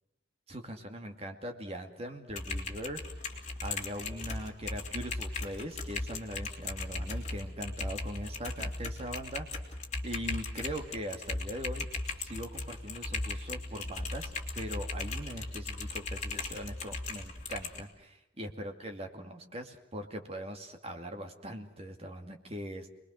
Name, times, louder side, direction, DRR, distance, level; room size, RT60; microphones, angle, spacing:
voice 1, 0.5-3.3 3.6-9.8 10.0-11.9 12.2-22.9, equal, 35° right, 5 dB, 2.4 m, -41 dB
Typing, 2.3-17.8, left 3 dB, 40° left, 3.3 m, -38 dB
29.0 x 21.0 x 6.5 m, 0.88 s
head